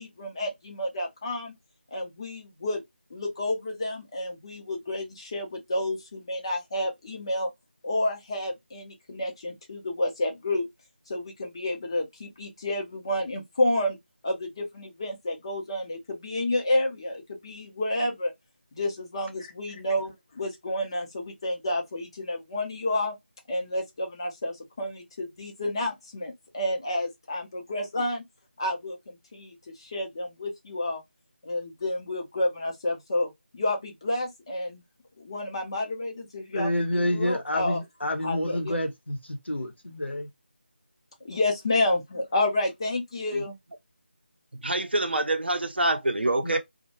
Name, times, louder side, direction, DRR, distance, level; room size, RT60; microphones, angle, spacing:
voice 1, 0.0-1.5 1.9-2.8 3.1-7.5 7.8-10.7 11.1-14.0 14.2-18.3 18.7-23.1 23.5-28.2 28.6-31.0 31.4-34.8 35.2-37.8 38.2-38.8 41.2-43.5, left 1 dB, 25° left, 0.6 m, -30 dB
voice 2, 36.5-40.3 46.4-46.6, left 1 dB, 80° left, 0.8 m, -29 dB
voice 3, 44.6-46.6, right 1 dB, 65° right, 0.6 m, -26 dB
2.2 x 2.1 x 2.8 m
figure-of-eight pair, 160°, 6 cm